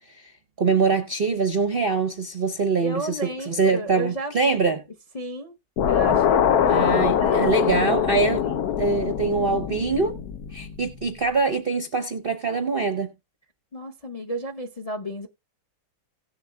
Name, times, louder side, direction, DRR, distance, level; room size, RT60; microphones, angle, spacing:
voice 1, 0.6-3.2 3.5-4.8 6.7-8.4 8.8-10.2 10.5-13.1, right 4 dB, 45° right, 0.7 m, -23 dB
voice 2, 2.8-4.8 5.1-5.6 5.9-7.5 8.4-8.6 13.7-15.3, right 1 dB, 30° left, 0.6 m, -33 dB
sound 1, 5.8-11.0, left 8 dB, 60° left, 1.2 m, -23 dB
17.5 x 7.2 x 2.3 m
omnidirectional pair, 2.1 m